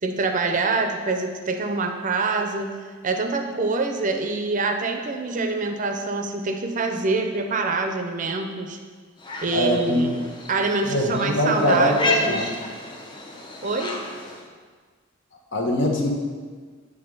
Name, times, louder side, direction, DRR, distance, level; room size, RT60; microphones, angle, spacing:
voice 1, 0.0-2.7 3.0-8.8 9.4-12.5 13.6-13.9, right 3 dB, 40° right, 5 dB, 0.6 m, -25 dB
sound 1, 9.2-14.5, left 2 dB, 25° left, 0.7 m, -32 dB
voice 2, 9.5-10.0 10.9-12.4 15.5-16.1, equal, 60° left, 0 dB, 1.1 m, -22 dB
8.0 x 3.6 x 5.2 m, 1.5 s
head